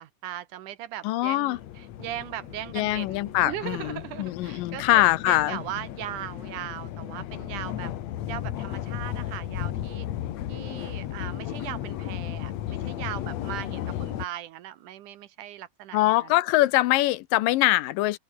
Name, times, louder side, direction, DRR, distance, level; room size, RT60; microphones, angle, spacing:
voice 1, 0.0-7.9 8.3-10.1 10.5-16.6, right 12 dB, 70° right, 2.4 m, -38 dB
voice 2, 1.0-1.6 2.7-5.6 15.9-18.2, left 17 dB, 80° left, 2.4 m, -23 dB
sound 1, 1.5-14.3, left 12 dB, 65° left, 2.1 m, -35 dB
open air
omnidirectional pair, 4.0 m